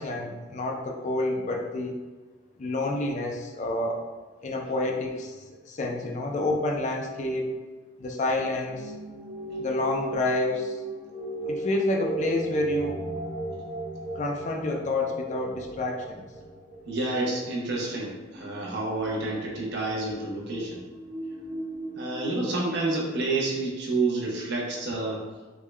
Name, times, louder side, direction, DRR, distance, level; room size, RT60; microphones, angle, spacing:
voice 1, 0.0-2.0 2.6-4.0 4.4-7.5 8.0-8.9 9.6-10.8 11.5-13.0 14.1-16.3, left 2 dB, 35° left, 1 dB, 0.4 m, -28 dB
sound 1, 8.7-23.3, right 2 dB, 15° right, 0.6 m, -37 dB
voice 2, 16.9-20.8 21.9-25.2, right 2 dB, 60° right, -2 dB, 0.8 m, -29 dB
3.6 x 2.2 x 3.1 m, 1.3 s
head